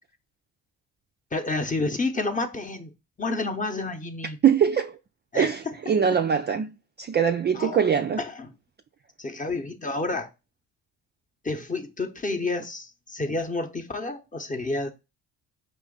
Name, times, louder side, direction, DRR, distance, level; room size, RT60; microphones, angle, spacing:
voice 1, 1.3-2.9 3.2-4.4 5.3-5.9 7.5-7.8 8.2-8.5 9.2-10.3 11.4-14.9, left 3 dB, 20° left, 0.8 m, -30 dB
voice 2, 4.4-5.0 5.3-8.2, right 7 dB, 30° right, 0.4 m, -23 dB
5.1 x 2.4 x 3.8 m
supercardioid pair, 60°, 39 cm